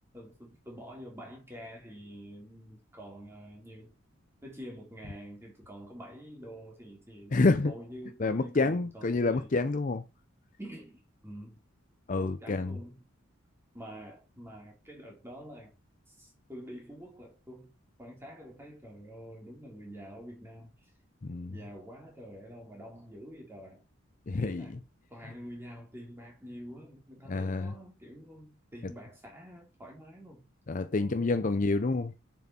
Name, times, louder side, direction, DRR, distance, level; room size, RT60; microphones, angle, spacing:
voice 1, 0.1-3.9 4.4-9.5 10.6-11.6 12.2-13.0 13.7-15.7 16.1-17.7 18.0-20.7 21.5-23.8 24.4-24.8 25.1-30.4 31.0-31.7, equal, 10° right, 2.9 m, -47 dB
voice 2, 7.3-7.7 8.2-10.0 12.1-12.8 21.2-21.5 24.3-24.7 27.3-27.7 30.7-32.1, left 3 dB, 40° left, 0.5 m, -28 dB
6.9 x 6.3 x 4.3 m
head